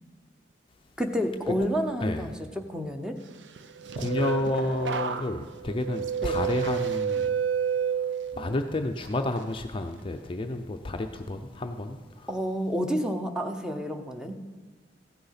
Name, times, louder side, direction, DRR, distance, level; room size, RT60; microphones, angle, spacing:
voice 1, 1.0-3.2 6.2-6.4 12.3-14.4, equal, 5° right, 6 dB, 0.8 m, -30 dB
sound 1, 3.6-8.6 9.0-9.4, right 7 dB, 80° right, 0.6 m, -30 dB
voice 2, 4.0-7.2 8.4-12.0, left 2 dB, 30° left, 6 dB, 0.5 m, -30 dB
15.0 x 6.7 x 5.7 m, 1.3 s
head